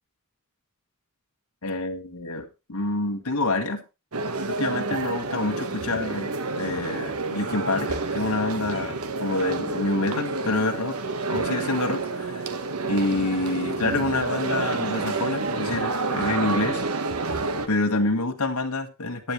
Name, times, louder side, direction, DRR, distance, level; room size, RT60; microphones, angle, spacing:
voice 1, 1.6-3.8 4.4-11.0 11.3-12.5 12.8-16.8 17.7-19.3, left 2 dB, 85° left, 1.7 m, -27 dB
sound 1, 4.1-17.7, right 3 dB, 85° right, 1.4 m, -29 dB
14.5 x 10.0 x 3.2 m
head